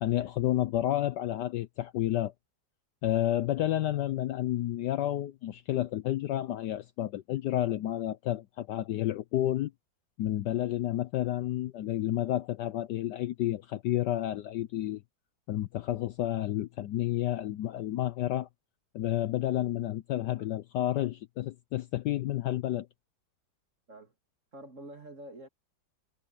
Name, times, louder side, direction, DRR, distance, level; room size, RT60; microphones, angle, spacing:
voice 1, 0.0-2.3 3.0-9.7 10.2-15.0 15.5-18.5 18.9-22.9, left 13 dB, 70° left, 1.1 m, -30 dB
voice 2, 24.5-25.5, right 1 dB, 35° right, 3.2 m, -47 dB
omnidirectional pair, 2.2 m